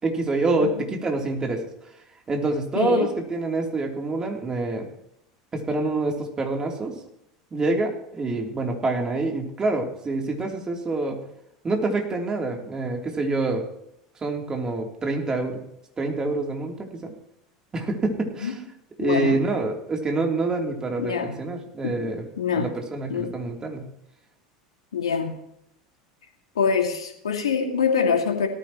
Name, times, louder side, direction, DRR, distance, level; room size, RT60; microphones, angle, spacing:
voice 1, 0.0-1.6 2.3-4.9 5.5-6.9 7.5-11.2 11.6-13.7 14.2-15.6 16.0-17.1 17.7-18.6 19.0-22.2 22.5-23.8, right 2 dB, 25° right, 1 dB, 3.3 m, -26 dB
voice 2, 2.7-3.1 18.4-18.5 19.0-19.4 21.0-21.4 21.8-22.1 22.4-22.7 23.1-23.3 24.9-25.4 26.6-28.5, left 6 dB, 80° left, 3 dB, 2.3 m, -24 dB
18.0 x 14.0 x 3.1 m, 0.77 s
figure-of-eight pair, 80°, 3 cm